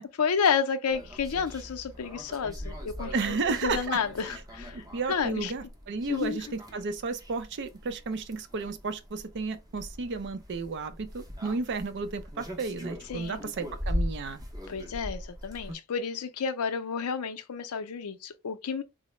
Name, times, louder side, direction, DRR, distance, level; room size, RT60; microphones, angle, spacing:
voice 1, 0.2-5.5 6.0-6.4 13.1-13.5 14.7-18.8, left 6 dB, 85° left, 0.5 m, -31 dB
sound 1, 0.9-15.8, equal, 15° right, 0.6 m, -40 dB
voice 2, 3.1-4.0 4.7-14.4, right 4 dB, 55° right, 0.5 m, -33 dB
3.7 x 2.1 x 3.1 m
head